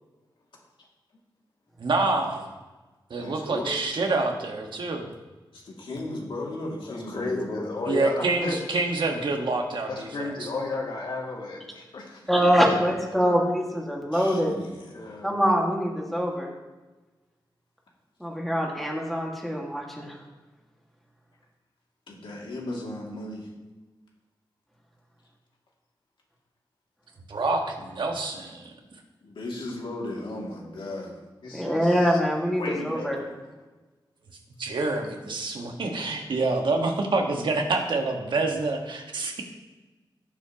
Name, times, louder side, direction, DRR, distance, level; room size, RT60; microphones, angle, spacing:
voice 1, 1.8-2.5 3.1-5.1 7.8-10.5 27.3-28.7 34.6-39.4, right 3 dB, 70° right, 2 dB, 1.5 m, -27 dB
voice 2, 3.2-3.8 6.9-8.6 9.9-12.7 13.2-13.4 14.9-15.4 29.5-29.6 31.4-32.2 32.6-33.5, left 3 dB, 70° left, -2 dB, 2.4 m, -34 dB
voice 3, 5.5-8.1 14.1-15.2 22.1-23.5 29.2-31.2, left 1 dB, 90° left, -3 dB, 2.5 m, -36 dB
voice 4, 12.3-14.5 15.2-16.5 18.2-20.1 31.5-33.2, equal, ahead, -1 dB, 1.9 m, -24 dB
17.5 x 7.3 x 3.0 m, 1.2 s
wide cardioid pair, 125°, 8 cm